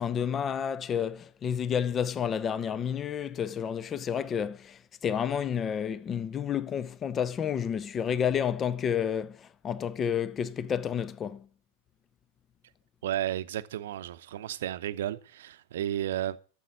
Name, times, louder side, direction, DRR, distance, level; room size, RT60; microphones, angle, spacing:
voice 1, 0.0-11.5, left 8 dB, 25° left, 0.6 m, -30 dB
voice 2, 13.0-16.4, right 12 dB, 60° right, 0.8 m, -33 dB
13.5 x 7.4 x 6.3 m
figure-of-eight pair, 90°, 0 cm